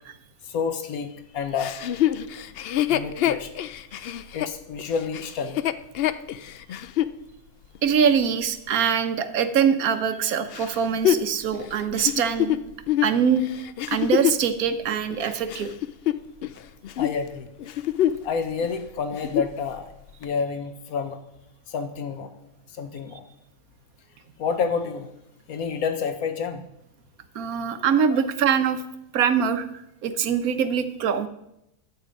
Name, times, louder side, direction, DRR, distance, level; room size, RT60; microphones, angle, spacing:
voice 1, 0.4-1.8 2.9-3.5 4.3-5.7 17.0-17.5 18.2-19.9 20.2-21.2 21.7-22.3 22.7-23.2 24.4-25.1 25.5-26.7 28.1-28.2, left 5 dB, 85° left, 8 dB, 1.4 m, -29 dB
Chuckle chortle, 1.6-7.2 7.7-7.8 10.5-14.5 15.1-16.6 16.8-17.2 17.6-18.3 18.6-18.7 19.1-19.6 20.2-20.3, left 12 dB, 65° left, 0.6 m, -26 dB
voice 2, 7.8-12.6 13.0-13.5 13.9-15.7 27.3-28.8 29.1-29.7 30.0-31.3, right 7 dB, 90° right, 9 dB, 1.3 m, -23 dB
12.0 x 8.4 x 5.2 m, 0.82 s
omnidirectional pair, 1.5 m